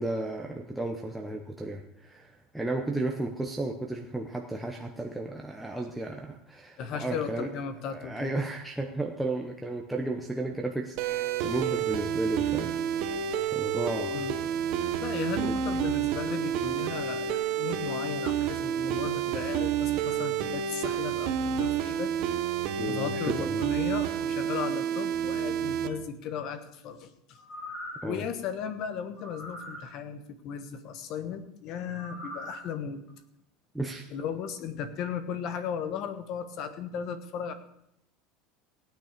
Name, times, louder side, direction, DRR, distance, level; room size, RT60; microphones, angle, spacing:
voice 1, 0.0-7.5 7.9-12.8 13.5-14.2 15.4-15.6 22.8-23.6 28.0-28.2 33.7-34.0, right 2 dB, ahead, 0 dB, 0.8 m, -33 dB
voice 2, 6.8-8.3 14.1-14.4 14.8-22.1 22.9-27.4 28.0-33.0 34.1-37.5, left 7 dB, 40° left, 10 dB, 1.2 m, -36 dB
sound 1, 11.0-25.9, right 8 dB, 50° right, 1.1 m, -29 dB
sound 2, 27.3-28.1 29.2-29.8 31.9-32.6 33.1-33.2, left 1 dB, 25° left, 3.2 m, -41 dB
16.5 x 9.3 x 5.1 m, 0.75 s
cardioid pair, 165°, 0 cm